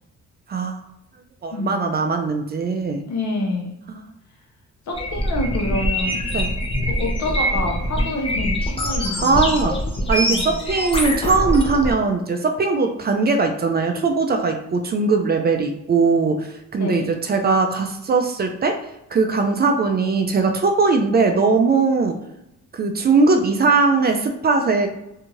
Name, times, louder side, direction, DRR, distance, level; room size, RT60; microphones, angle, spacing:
voice 1, 0.5-0.8 1.4-3.0 6.3-6.5 9.2-9.8 10.1-18.8 19.1-22.2 22.7-24.9, right 4 dB, 35° right, 5 dB, 0.4 m, -20 dB
voice 2, 3.0-3.8 4.9-6.2 6.9-9.6 10.3-10.5 16.8-17.1, left 2 dB, 65° left, 0 dB, 0.9 m, -27 dB
sound 1, 4.9-11.9, equal, 20° left, 0.6 m, -24 dB
2.7 x 2.3 x 2.9 m, 0.85 s
cardioid pair, 90°, 30 cm